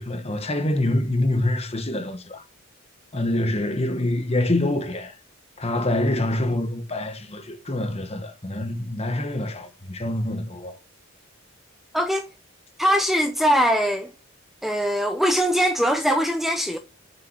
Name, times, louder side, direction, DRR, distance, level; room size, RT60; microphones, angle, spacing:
voice 1, 0.0-2.4 3.1-5.2 5.6-10.8, left 1 dB, 30° left, 1.2 m, -25 dB
voice 2, 11.9-12.3 12.8-14.1 14.6-16.8, equal, ahead, 0.7 m, -21 dB
7.0 x 6.3 x 6.2 m
head